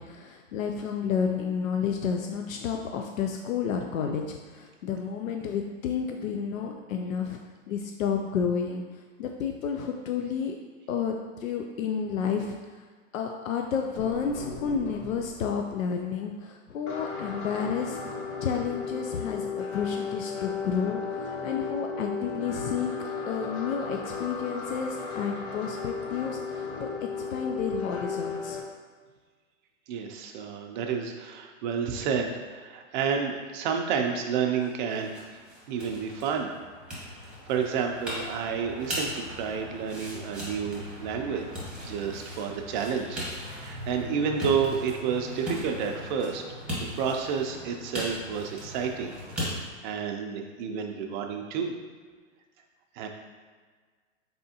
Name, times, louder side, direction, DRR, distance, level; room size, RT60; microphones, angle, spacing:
voice 1, 0.0-7.4 7.7-10.6 10.9-11.2 11.4-12.5 13.1-18.0 18.4-22.9 23.3-28.6, left 6 dB, 90° left, 3 dB, 0.5 m, -31 dB
sound 1, 14.0-15.7 16.9-28.6, left 5 dB, 55° left, 0.8 m, -35 dB
voice 2, 29.9-35.4 35.7-36.5 37.2-41.4 41.8-46.4 47.0-49.1 49.8-51.7 52.9-53.1, right 6 dB, 40° right, 3 dB, 0.5 m, -30 dB
sound 2, 34.6-49.6, equal, ahead, 1.0 m, -38 dB
4.1 x 3.4 x 2.7 m, 1.5 s
hypercardioid pair, 130°, 39 cm